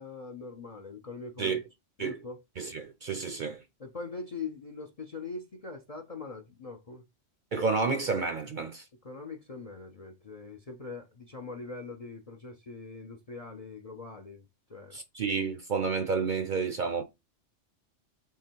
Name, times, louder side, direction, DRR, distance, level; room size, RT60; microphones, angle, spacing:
voice 1, 0.0-1.6 2.0-2.4 3.8-7.0 9.0-15.0, left 4 dB, 45° left, 0.5 m, -42 dB
voice 2, 2.6-3.6 7.5-8.8 14.9-17.0, right 5 dB, 55° right, 0.6 m, -30 dB
3.7 x 3.2 x 4.4 m
omnidirectional pair, 1.3 m